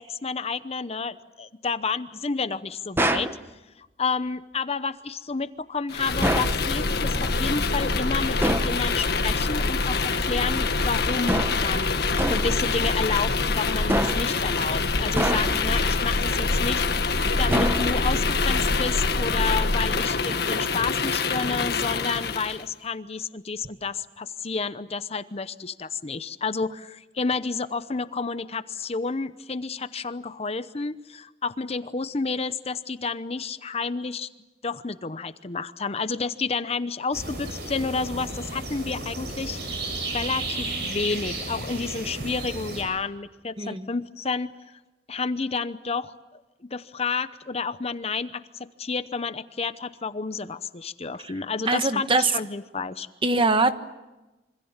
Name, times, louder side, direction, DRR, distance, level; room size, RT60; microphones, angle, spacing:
voice 1, 0.0-3.3 3.8-12.0 12.3-34.3 34.6-39.6 40.1-44.8 45.1-53.1, left 4 dB, 35° left, 13 dB, 0.8 m, -30 dB
sound 1, 3.0-3.4 6.2-6.6 8.4-8.8 11.3-11.7 12.2-12.6 13.9-14.4 15.2-15.8 17.5-18.2, right 1 dB, 15° right, 1.1 m, -26 dB
sound 2, 5.9-22.6, left 3 dB, 65° left, 1.7 m, -25 dB
sound 3, 37.1-42.8, right 2 dB, 70° right, 7.4 m, -33 dB
voice 2, 43.6-43.9 51.7-52.3 53.2-53.7, right 3 dB, 30° right, 9 dB, 1.3 m, -22 dB
26.5 x 25.5 x 7.3 m, 1.1 s
head